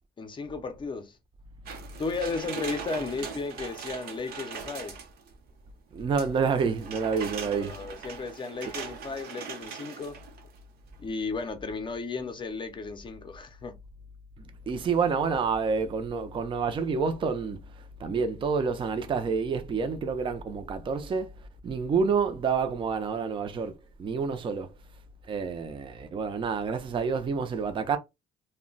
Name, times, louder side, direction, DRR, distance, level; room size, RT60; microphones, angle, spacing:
voice 1, 0.2-1.2 2.0-5.0 7.4-10.2 11.0-13.8, left 4 dB, 30° left, 0.5 m, -34 dB
sound 1, 1.7-5.3 6.2-10.6 10.9-11.0, right 6 dB, 65° right, 0.8 m, -41 dB
voice 2, 5.9-7.7 14.7-17.6 18.0-21.3 21.6-23.7 24.0-24.7 25.3-28.0, right 5 dB, 30° right, 0.5 m, -28 dB
2.2 x 2.1 x 3.8 m
cardioid pair, 110°, 17 cm